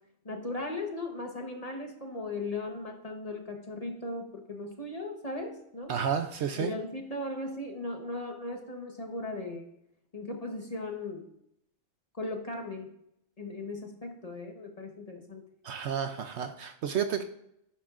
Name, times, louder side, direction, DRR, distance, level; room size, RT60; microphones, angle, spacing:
voice 1, 0.2-5.9 6.6-9.7 10.1-11.3 12.1-12.9 13.4-15.4, left 2 dB, 30° left, 2 dB, 1.2 m, -37 dB
voice 2, 5.9-6.7 15.6-17.2, right 7 dB, 65° right, 8 dB, 0.8 m, -31 dB
11.5 x 8.3 x 2.5 m, 0.78 s
omnidirectional pair, 1.4 m